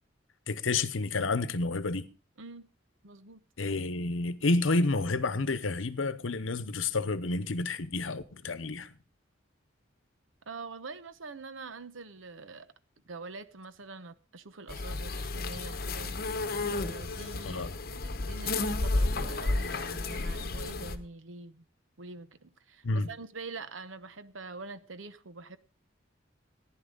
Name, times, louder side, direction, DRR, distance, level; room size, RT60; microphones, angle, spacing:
voice 1, 0.5-2.1 3.6-8.9 17.4-17.7 22.8-23.1, left 3 dB, 80° left, 0.9 m, -30 dB
voice 2, 3.0-3.4 10.5-12.7 13.1-16.1 16.4-21.7 22.0-25.6, right 3 dB, 80° right, 1.0 m, -45 dB
sound 1, 14.7-21.0, left 2 dB, 50° left, 1.0 m, -32 dB
15.0 x 11.0 x 3.9 m
head